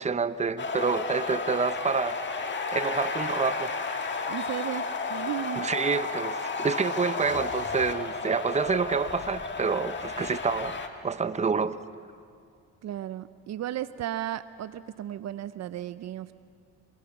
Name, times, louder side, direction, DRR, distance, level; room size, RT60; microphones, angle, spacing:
voice 1, 0.0-2.4 2.7-3.7 5.6-10.8 11.0-11.8, right 5 dB, 25° right, 13 dB, 0.8 m, -28 dB
sound 1, 0.6-10.9, left 4 dB, 40° left, 1.8 m, -32 dB
voice 2, 4.3-5.7 12.8-16.4, right 12 dB, 60° right, 14 dB, 0.6 m, -35 dB
26.5 x 22.0 x 6.1 m, 2.4 s
cardioid pair, 90°, 30 cm